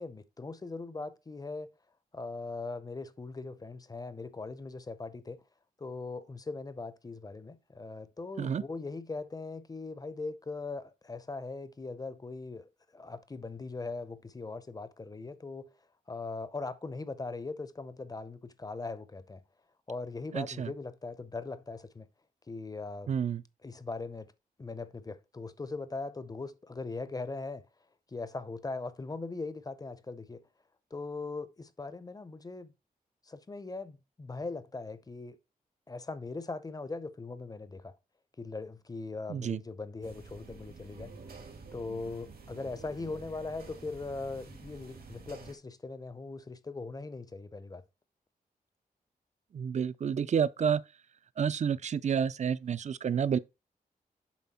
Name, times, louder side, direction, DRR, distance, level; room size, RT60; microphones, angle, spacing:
voice 1, 0.0-1.7 2.1-5.4 5.8-15.7 16.1-19.4 19.9-22.1 22.5-23.1 23.6-24.3 24.6-27.7 28.1-30.4 30.9-32.7 33.2-35.4 35.9-37.9 38.4-41.1 41.7-47.8, left 3 dB, 25° left, 0.6 m, -40 dB
voice 2, 20.3-20.7 23.1-23.4 39.3-39.6 49.5-50.8 51.4-53.4, right 7 dB, 50° right, 0.4 m, -29 dB
sound 1, 40.0-45.6, right 3 dB, 90° right, 1.9 m, -49 dB
7.1 x 4.9 x 4.1 m
wide cardioid pair, 130°, 15 cm